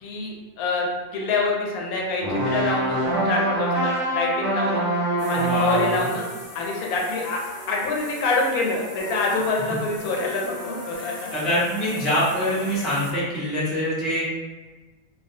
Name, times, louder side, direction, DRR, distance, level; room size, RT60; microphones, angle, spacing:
voice 1, 0.0-0.9 1.1-4.9 5.3-6.3 6.5-7.4 7.7-11.3, left 3 dB, 85° left, -1 dB, 1.0 m, -26 dB
sound 1, 2.2-6.2, right 1 dB, 70° right, 1.0 m, -24 dB
sound 2, 5.2-13.1, left 1 dB, 55° left, 0.8 m, -38 dB
voice 2, 5.3-6.1 11.0-14.2, equal, ahead, -9 dB, 0.3 m, -25 dB
2.3 x 2.2 x 2.6 m, 1.2 s
omnidirectional pair, 1.5 m